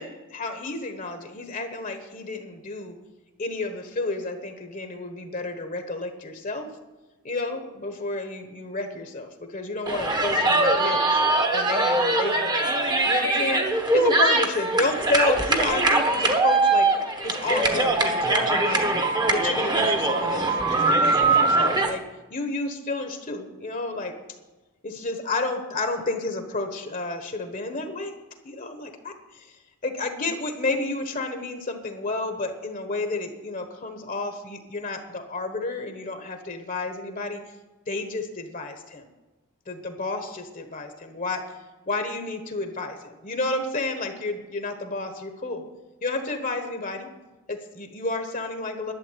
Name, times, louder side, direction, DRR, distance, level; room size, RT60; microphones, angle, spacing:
voice 1, 0.0-3.0 3.4-6.7 7.2-11.2 11.5-16.9 17.2-18.9 19.3-22.0 22.3-24.1 24.8-28.1 28.4-37.4 37.9-39.1 39.7-41.6 41.9-45.6 46.0-47.1 47.5-48.9, left 2 dB, 35° left, 7 dB, 1.2 m, -31 dB
sound 1, 9.9-21.9, right 2 dB, 20° right, 1.1 m, -22 dB
11.5 x 7.3 x 9.2 m, 1.2 s
head